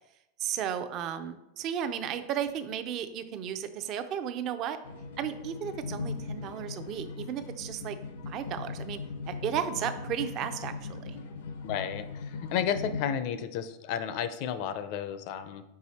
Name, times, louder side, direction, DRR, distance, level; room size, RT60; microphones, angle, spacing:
voice 1, 0.4-4.8 5.2-8.0 8.3-9.0 9.3-11.2, right 9 dB, 40° right, 10 dB, 0.5 m, -34 dB
sound 1, 4.8-13.0, left 4 dB, 90° left, 0.8 m, -39 dB
voice 2, 11.6-15.6, left 8 dB, 55° left, 11 dB, 0.5 m, -32 dB
4.8 x 4.8 x 4.2 m, 0.88 s
supercardioid pair, 130°, 0 cm